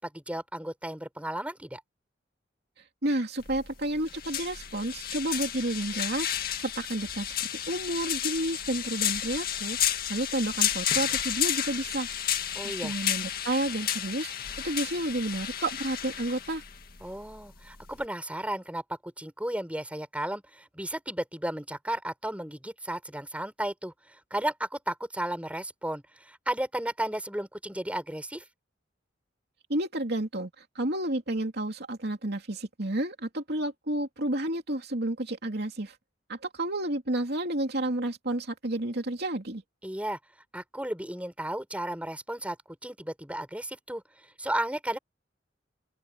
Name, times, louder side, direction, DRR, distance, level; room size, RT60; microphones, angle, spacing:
voice 1, 0.0-1.8 12.5-12.9 17.0-28.4 39.8-40.2 40.5-44.0 44.4-45.0, right 1 dB, 10° right, 7.0 m, -34 dB
voice 2, 3.0-7.3 7.7-12.1 12.6-16.6 29.7-35.9 36.3-39.6, right 1 dB, 60° right, 2.9 m, -31 dB
sound 1, 3.4-18.0, left 10 dB, 55° left, 2.0 m, -32 dB
open air
head